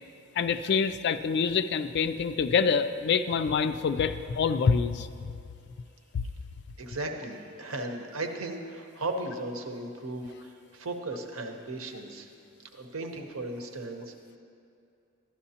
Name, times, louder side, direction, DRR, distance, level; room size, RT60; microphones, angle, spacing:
voice 1, 0.4-5.3 6.1-6.2, left 6 dB, 55° left, 11 dB, 0.3 m, -26 dB
voice 2, 6.8-12.3 12.7-14.1, right 2 dB, 80° right, 4 dB, 0.9 m, -36 dB
13.0 x 10.5 x 2.8 m, 2.6 s
head